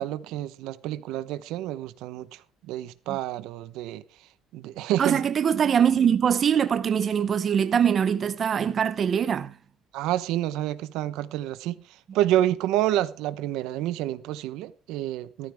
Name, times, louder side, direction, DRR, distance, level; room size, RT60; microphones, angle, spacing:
voice 1, 0.0-4.0 4.5-5.2 9.9-15.5, right 13 dB, 80° right, 0.9 m, -28 dB
voice 2, 5.0-9.6, right 8 dB, 30° right, 0.6 m, -23 dB
15.5 x 13.5 x 3.5 m
cardioid pair, 170°, 0 cm